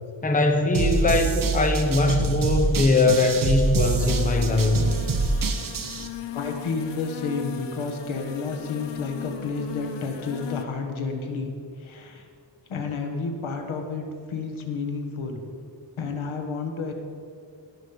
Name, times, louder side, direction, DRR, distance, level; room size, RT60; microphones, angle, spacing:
voice 1, 0.2-4.8, left 2 dB, 15° left, 5 dB, 0.8 m, -21 dB
sound 1, 0.7-6.1, right 3 dB, 45° right, 1.0 m, -25 dB
sound 2, 4.0-10.6, left 10 dB, 65° left, 0.8 m, -38 dB
voice 2, 6.3-11.5 11.8-12.3 12.7-15.4 16.0-16.9, left 4 dB, 85° left, 4 dB, 1.6 m, -31 dB
18.5 x 6.4 x 5.3 m, 2.4 s
wide cardioid pair, 145°, 47 cm